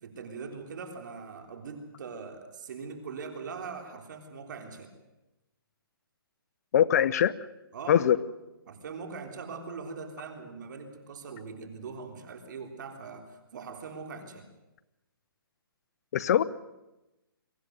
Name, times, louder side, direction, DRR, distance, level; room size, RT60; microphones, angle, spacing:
voice 1, 0.0-4.9 7.7-8.1 8.7-14.5, right 5 dB, 50° right, 5 dB, 3.6 m, -41 dB
voice 2, 6.7-7.3 7.9-8.2 16.1-16.4, left 10 dB, 40° left, 15 dB, 0.9 m, -22 dB
24.0 x 14.5 x 9.4 m, 0.99 s
hypercardioid pair, 155°, 12 cm